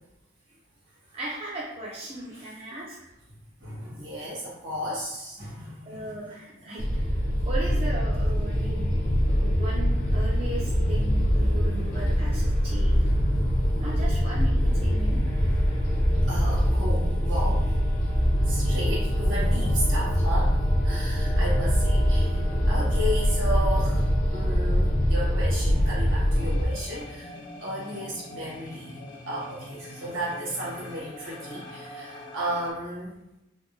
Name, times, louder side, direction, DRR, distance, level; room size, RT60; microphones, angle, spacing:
voice 1, 1.1-3.0 5.8-6.8 7.4-8.9 9.2-13.0 13.8-15.2, right 2 dB, 30° right, -6 dB, 0.4 m, -37 dB
voice 2, 3.6-6.1 13.1-13.2 14.3-14.4 16.3-17.8 18.5-20.6 20.8-24.0 24.3-27.3 27.6-33.2, equal, 70° right, -6 dB, 1.3 m, -34 dB
sound 1, 6.8-26.7, equal, 40° left, 0.5 m, -23 dB
sound 2, 26.3-32.7, left 1 dB, 75° left, 1.0 m, -42 dB
3.5 x 2.1 x 2.6 m, 0.90 s
head